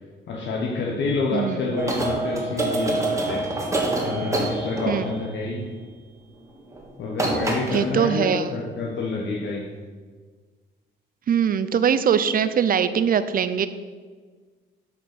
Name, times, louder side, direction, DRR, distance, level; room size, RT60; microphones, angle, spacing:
voice 1, 0.3-3.5 4.0-5.7 7.0-9.7, left 3 dB, 65° left, -1 dB, 1.2 m, -28 dB
sound 1, 1.8-5.2 6.7-6.9 7.1-7.9, right 2 dB, 15° right, 1.8 m, -26 dB
voice 2, 7.7-8.5 11.3-13.7, right 7 dB, 45° right, 13 dB, 0.6 m, -21 dB
8.5 x 5.3 x 6.0 m, 1.5 s
cardioid pair, 90°, 20 cm